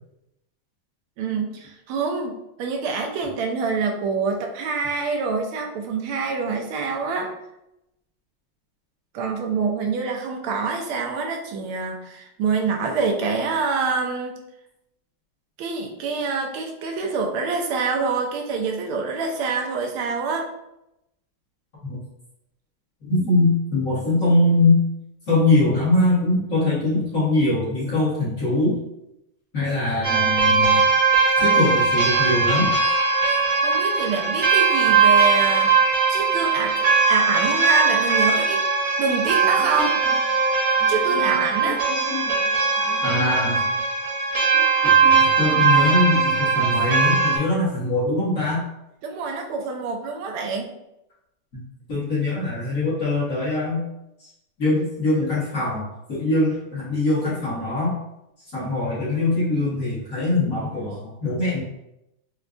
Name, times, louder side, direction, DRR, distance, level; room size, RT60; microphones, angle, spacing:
voice 1, 1.2-7.3 9.1-14.4 15.6-20.5 33.6-35.7 36.1-38.7 39.0-40.0 40.9-41.8 49.0-50.7, right 4 dB, 85° right, 2 dB, 1.5 m, -26 dB
voice 2, 23.0-24.8 25.3-28.8 29.5-30.8 31.4-32.7 39.7-39.9 40.8-42.5 42.8-43.7 44.8-48.6 51.9-53.8 54.2-54.3 54.6-57.9 58.5-61.6, left 2 dB, 45° left, -8 dB, 1.3 m, -22 dB
sound 1, 30.0-47.4, right 5 dB, 55° right, 1.2 m, -20 dB
4.8 x 2.2 x 2.4 m, 0.86 s
omnidirectional pair, 2.3 m